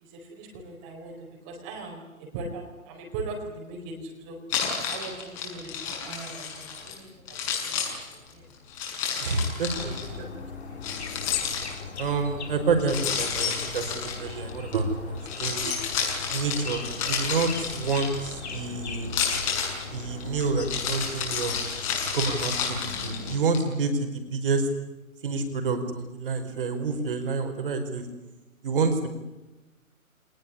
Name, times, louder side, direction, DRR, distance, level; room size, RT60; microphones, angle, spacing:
voice 1, 0.0-4.4 4.9-8.5 8.9-10.3 10.7-10.8, right 3 dB, 20° right, 1 dB, 4.6 m, -40 dB
Keys jangling, 4.5-6.9 7.3-10.0 10.8-12.0 12.9-14.7 15.2-18.5 19.0-23.6, left 7 dB, 25° left, 6.8 m, -31 dB
voice 2, 9.2-10.1 12.0-15.8 16.3-19.2 19.9-21.6 22.1-24.7 25.2-28.1 28.6-29.1, right 4 dB, 40° right, 6 dB, 4.8 m, -28 dB
sound 1, 9.7-23.4, left 4 dB, 50° left, 4.4 m, -39 dB
25.5 x 20.0 x 10.0 m, 1.1 s
figure-of-eight pair, 140°, 43 cm